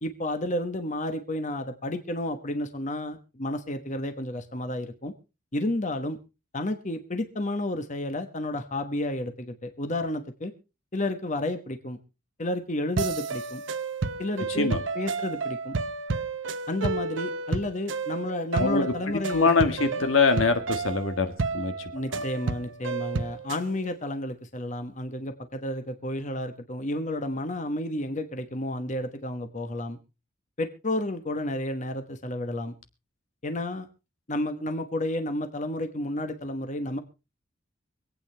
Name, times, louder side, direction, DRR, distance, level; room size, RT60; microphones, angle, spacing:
voice 1, 0.0-5.1 5.5-6.2 6.5-10.5 10.9-12.0 12.4-13.6 14.2-14.7 14.9-15.8 16.7-19.5 19.8-20.0 21.9-30.0 30.6-32.7 33.4-33.9 34.3-37.0, left 1 dB, 40° left, 7 dB, 1.2 m, -31 dB
sound 1, 13.0-23.7, right 4 dB, 65° right, 0.8 m, -31 dB
voice 2, 18.6-22.2, left 4 dB, 85° left, 7 dB, 1.7 m, -24 dB
25.0 x 8.8 x 3.3 m, 0.30 s
head